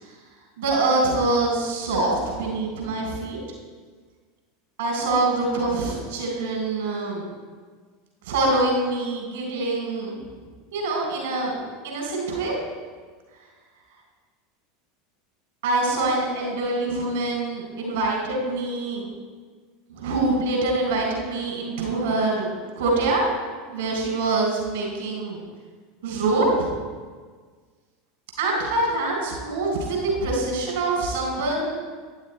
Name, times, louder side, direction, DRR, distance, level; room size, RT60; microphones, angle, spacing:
voice 1, 0.6-3.4 4.8-7.2 8.2-10.2 10.7-12.6 15.6-19.1 19.9-22.5 22.8-23.2 23.7-25.4 26.0-26.7 28.4-31.8, right 2 dB, 65° right, -1 dB, 3.8 m, -25 dB
11.5 x 10.0 x 4.4 m, 1.5 s
figure-of-eight pair, 80°, 0 cm